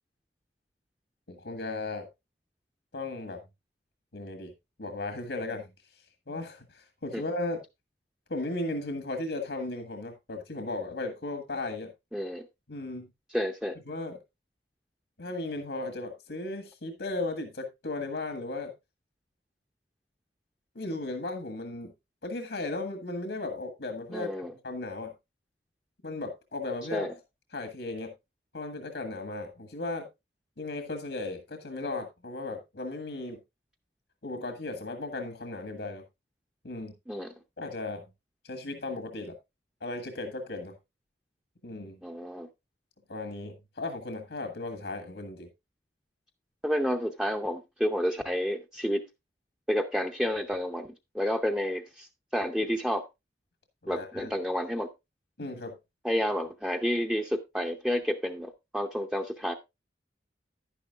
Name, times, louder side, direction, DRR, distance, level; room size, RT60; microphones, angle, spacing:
voice 1, 1.3-2.1 2.9-3.4 4.1-4.5 4.8-5.7 6.3-7.6 8.3-11.9 12.7-13.1 13.8-14.2 15.2-18.7 20.7-21.9 22.2-25.1 26.0-27.2 27.5-28.1 28.5-30.1 30.6-33.4 34.2-36.0 36.6-36.9 37.6-38.1 38.4-39.4 39.8-40.7 41.6-42.0 43.1-45.5 53.8-54.3 55.4-55.8, left 2 dB, 80° left, 6 dB, 1.6 m, -36 dB
voice 2, 12.1-12.5 13.3-13.7 24.1-24.5 26.9-27.1 37.1-37.3 42.0-42.5 46.6-49.1 49.7-52.1 52.3-53.1 53.9-54.9 56.0-59.5, equal, 5° right, 3 dB, 0.6 m, -30 dB
10.5 x 10.0 x 2.4 m, 0.22 s
head